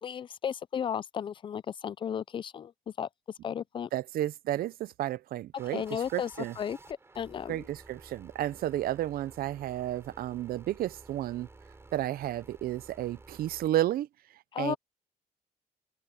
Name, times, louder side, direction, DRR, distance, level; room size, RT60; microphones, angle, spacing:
voice 1, 0.0-2.7 3.0-3.1 3.4-3.9 5.7-7.7 14.5-14.8, left 8 dB, 30° left, 0.4 m, -34 dB
voice 2, 3.9-6.5 7.5-11.5 11.9-14.1 14.6-14.8, right 13 dB, 70° right, 0.6 m, -32 dB
sound 1, 5.6-13.7, right 3 dB, 15° right, 4.9 m, -53 dB
open air
cardioid pair, 160°, 16 cm